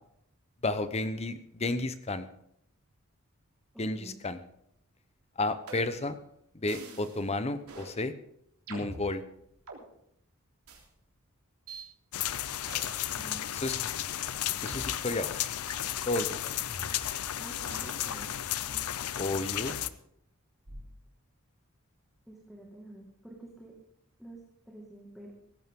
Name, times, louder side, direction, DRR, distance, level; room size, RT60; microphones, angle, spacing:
voice 1, 0.6-2.3 3.8-4.4 5.4-6.2 6.5-8.1 8.7-9.2 13.6-13.7 14.6-15.4 16.1-16.4 19.2-19.7, left 2 dB, 30° left, 11 dB, 0.9 m, -32 dB
voice 2, 3.7-4.2 13.2-13.4 17.4-18.3 22.3-23.8 24.2-24.4 24.7-25.3, right 1 dB, ahead, -2 dB, 2.1 m, -48 dB
sound 1, 5.7-6.1 6.7-7.2 7.7-7.9 8.7-9.8 10.7-10.8 11.7-11.8 12.7-13.1 13.7-13.8 14.7-14.8 15.7-15.9 16.7-17.2 17.7-18.9 19.7-19.9 20.7-21.0, right 2 dB, 85° right, 3.4 m, -46 dB
sound 2, 12.1-19.9, left 11 dB, 85° left, 0.6 m, -34 dB
17.0 x 15.0 x 3.8 m, 0.73 s
head